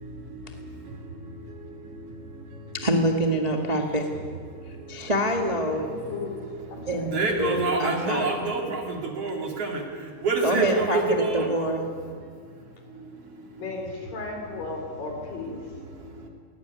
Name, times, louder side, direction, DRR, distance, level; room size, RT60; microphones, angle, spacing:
voice 1, 2.7-4.1 4.9-5.9 6.9-8.3 10.4-11.9, right 1 dB, 20° right, 2 dB, 1.2 m, -26 dB
voice 2, 5.6-6.4 6.7-7.3 13.6-15.6, left 3 dB, 90° left, 2 dB, 6.1 m, -35 dB
voice 3, 7.1-8.8 9.2-9.8 10.2-11.5, right 3 dB, 45° right, 1 dB, 3.7 m, -26 dB
21.0 x 18.5 x 9.5 m, 2.1 s
omnidirectional pair, 3.8 m